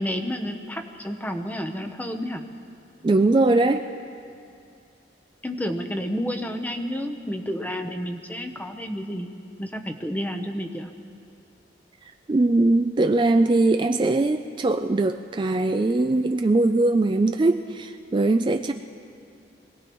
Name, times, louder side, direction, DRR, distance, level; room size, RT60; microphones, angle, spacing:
voice 1, 0.0-2.4 5.4-9.3 9.6-10.9, equal, 10° left, 5 dB, 0.8 m, -30 dB
voice 2, 3.0-3.8 12.3-18.7, right 2 dB, 25° right, 6 dB, 0.3 m, -21 dB
24.5 x 18.0 x 3.1 m, 2.5 s
head